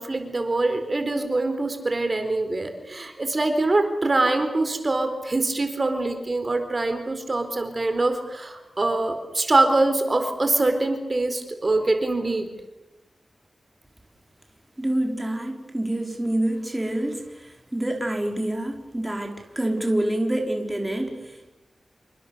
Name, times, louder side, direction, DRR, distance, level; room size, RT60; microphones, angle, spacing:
voice 1, 0.0-12.5, right 2 dB, 40° right, 7 dB, 4.2 m, -24 dB
voice 2, 14.8-21.5, right 1 dB, 15° right, 2 dB, 4.1 m, -27 dB
28.5 x 25.0 x 6.9 m, 0.99 s
wide cardioid pair, 85°, 0 cm